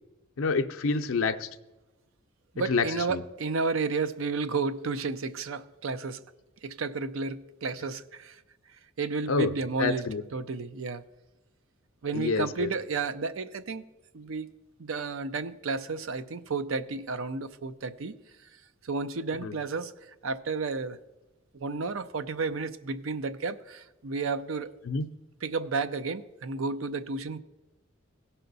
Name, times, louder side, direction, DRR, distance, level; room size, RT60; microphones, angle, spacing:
voice 1, 0.4-1.5 2.7-3.2 9.3-9.5 9.8-10.2 12.1-12.7 19.4-19.5 24.9-25.1, left 4 dB, 75° left, 6 dB, 0.5 m, -27 dB
voice 2, 2.5-6.2 6.6-8.4 9.0-10.1 10.3-11.0 12.0-13.8 14.1-14.5 14.8-18.1 18.8-19.9 20.2-21.0 21.6-24.7 25.4-27.4, right 4 dB, 70° right, 12 dB, 0.5 m, -32 dB
16.5 x 5.6 x 4.0 m, 1.1 s
head